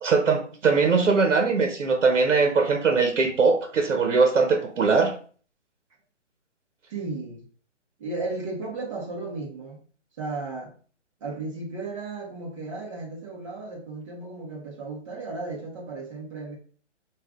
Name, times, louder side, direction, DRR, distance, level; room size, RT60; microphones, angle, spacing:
voice 1, 0.0-5.1, right 4 dB, 85° right, 1.0 m, -21 dB
voice 2, 6.9-7.5 8.0-9.8 10.2-10.7 11.2-16.6, right 3 dB, 25° right, 1.1 m, -34 dB
5.4 x 2.5 x 3.6 m
hypercardioid pair, 160°, 36 cm